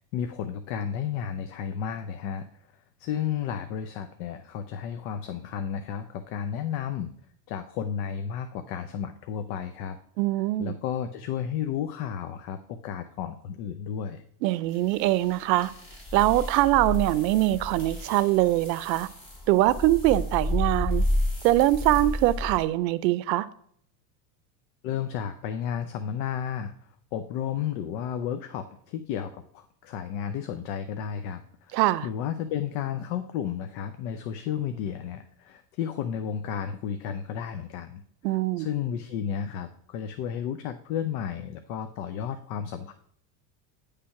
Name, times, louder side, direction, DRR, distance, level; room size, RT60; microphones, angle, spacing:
voice 1, 0.1-2.5 3.0-7.1 7.5-10.0 10.6-14.2 24.8-26.7 27.1-38.0 38.3-42.9, left 8 dB, 60° left, 0.7 m, -32 dB
voice 2, 10.2-10.8 14.4-15.7 16.1-19.1 19.5-21.0 21.4-23.5 31.7-32.1 38.2-38.7, right 16 dB, 80° right, 0.6 m, -23 dB
Glitch - steps, 14.7-22.6, left 1 dB, 25° left, 3.3 m, -31 dB
9.7 x 3.4 x 5.7 m
supercardioid pair, 105°, 50 cm